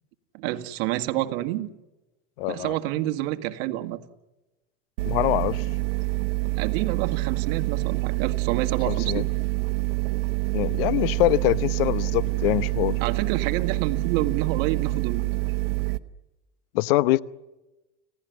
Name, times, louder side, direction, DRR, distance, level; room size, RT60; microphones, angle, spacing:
voice 1, 0.3-1.7 2.5-4.0 6.6-9.3 12.9-15.2, right 15 dB, 65° right, 2.0 m, -28 dB
voice 2, 2.4-2.7 5.0-5.6 8.9-9.2 10.5-13.0 16.7-17.2, left 17 dB, 80° left, 1.0 m, -24 dB
sound 1, 5.0-16.0, right 24 dB, 90° right, 1.1 m, -26 dB
30.0 x 17.0 x 9.4 m
supercardioid pair, 125°, 29 cm